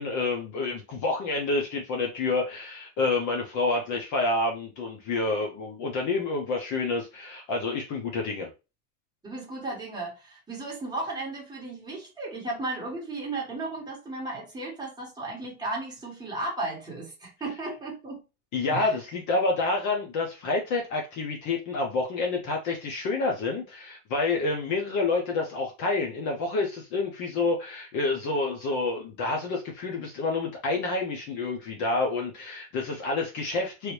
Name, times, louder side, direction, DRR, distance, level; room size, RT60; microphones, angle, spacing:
voice 1, 0.0-8.5 18.5-33.9, left 3 dB, 40° left, 0.7 m, -28 dB
voice 2, 9.2-18.2 18.7-18.9, right 2 dB, 10° right, 1.4 m, -35 dB
3.2 x 2.6 x 3.1 m
supercardioid pair, 150°, 46 cm